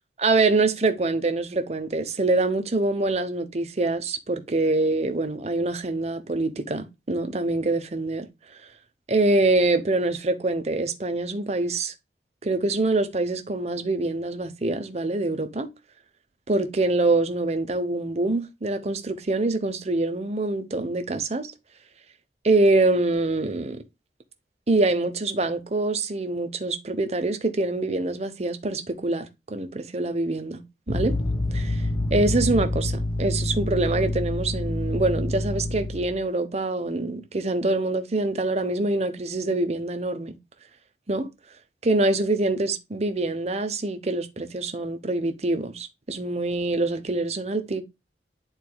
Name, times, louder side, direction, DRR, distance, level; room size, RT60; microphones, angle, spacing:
voice 1, 0.2-8.3 9.1-11.9 12.4-15.7 16.5-21.5 22.4-23.8 24.7-30.6 30.9-31.2 31.5-31.8 32.1-40.4 41.1-41.3 41.8-47.8, right 2 dB, 35° right, 0.8 m, -25 dB
sound 1, 30.9-36.2, left 1 dB, 20° left, 0.9 m, -27 dB
10.5 x 4.1 x 2.2 m
head